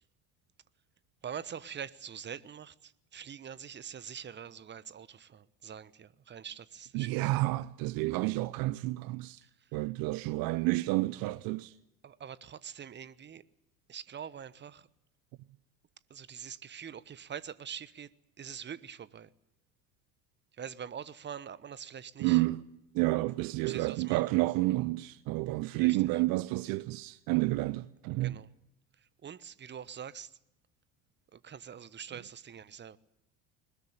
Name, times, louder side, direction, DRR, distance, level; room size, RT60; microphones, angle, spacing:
voice 1, 1.2-7.3 9.4-9.5 12.0-13.4 13.9-14.9 16.1-18.1 18.4-19.3 20.6-22.4 23.6-24.2 25.7-26.2 28.2-28.5 29.2-30.3 31.3-33.0, right 8 dB, 25° right, 1.1 m, -44 dB
voice 2, 6.9-9.4 9.7-11.7 22.2-22.6 22.9-28.4, right 20 dB, 50° right, 0.8 m, -30 dB
21.5 x 20.5 x 8.8 m
figure-of-eight pair, 70°, 47 cm